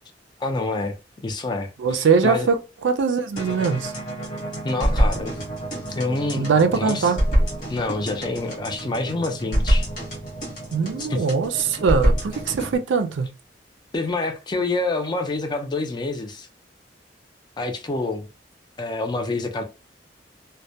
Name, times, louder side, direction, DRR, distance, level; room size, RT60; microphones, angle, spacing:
voice 1, 0.4-0.9 1.2-2.5 4.6-5.4 5.9-7.1 7.7-9.9 11.0-11.2 13.9-16.5 17.6-18.3 18.8-19.6, left 2 dB, 25° left, 0.4 m, -27 dB
voice 2, 1.8-3.9 6.3-7.2 10.7-13.3, right 5 dB, 85° right, 0.4 m, -21 dB
sound 1, 3.4-12.8, equal, 45° left, 0.9 m, -26 dB
2.1 x 2.1 x 2.7 m
head